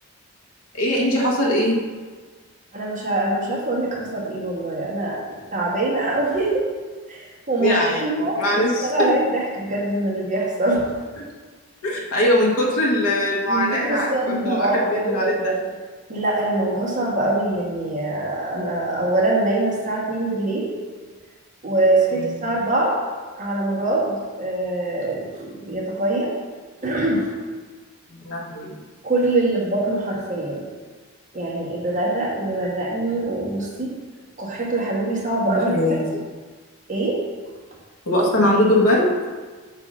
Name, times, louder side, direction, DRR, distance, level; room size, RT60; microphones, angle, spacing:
voice 1, 0.7-1.8 7.6-9.1 11.8-14.1 14.4-15.4 28.3-28.8 35.4-35.9 38.1-39.1, left 1 dB, 85° left, -3 dB, 1.4 m, -21 dB
voice 2, 2.7-5.2 5.5-6.7 7.1-10.9 13.5-15.6 16.1-20.7 21.6-23.0 23.4-26.3 26.8-27.3 29.0-30.6 31.3-33.9 34.4-36.0 36.9-37.2, right 2 dB, 35° right, -5 dB, 1.5 m, -23 dB
8.1 x 2.8 x 5.5 m, 1.4 s
head